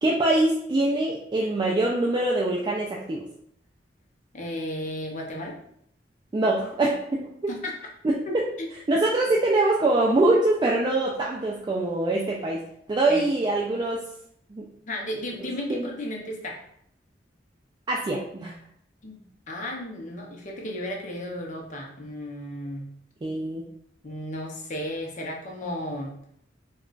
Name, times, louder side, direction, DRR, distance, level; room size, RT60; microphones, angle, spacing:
voice 1, 0.0-3.2 6.3-7.3 8.0-8.1 8.9-12.6 12.9-14.0 14.5-14.6 15.7-15.9 17.9-18.6 23.2-23.6, right 2 dB, 25° right, -3 dB, 0.3 m, -23 dB
voice 2, 4.3-5.6 7.5-7.8 8.2-8.7 13.1-13.3 14.9-16.6 19.0-22.9 24.0-26.2, left 1 dB, 45° left, 0 dB, 0.6 m, -34 dB
2.3 x 2.2 x 3.7 m, 0.70 s
head